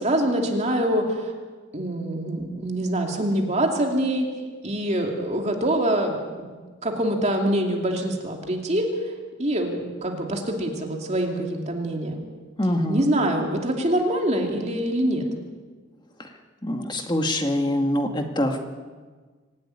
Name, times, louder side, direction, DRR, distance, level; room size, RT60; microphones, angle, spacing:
voice 1, 0.0-1.3 1.7-4.3 4.6-6.5 6.8-9.1 9.4-12.2 12.9-15.3, right 1 dB, 35° right, 1 dB, 2.6 m, -25 dB
voice 2, 12.6-13.2 16.2-16.3 16.6-18.6, left 1 dB, 20° left, 4 dB, 1.9 m, -24 dB
25.0 x 11.5 x 10.0 m, 1.4 s
head